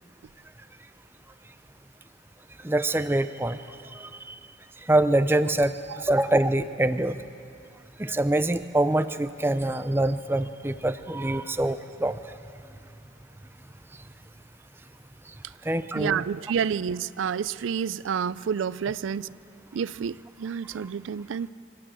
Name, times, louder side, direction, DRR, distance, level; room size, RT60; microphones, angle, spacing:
voice 1, 2.6-3.6 3.9-4.4 4.9-5.8 6.0-7.2 8.0-12.2 15.7-16.2, right 1 dB, 10° right, 11 dB, 0.5 m, -24 dB
voice 2, 15.9-19.3 19.7-21.5, right 7 dB, 80° right, 18 dB, 0.4 m, -29 dB
26.0 x 12.5 x 9.0 m, 2.6 s
head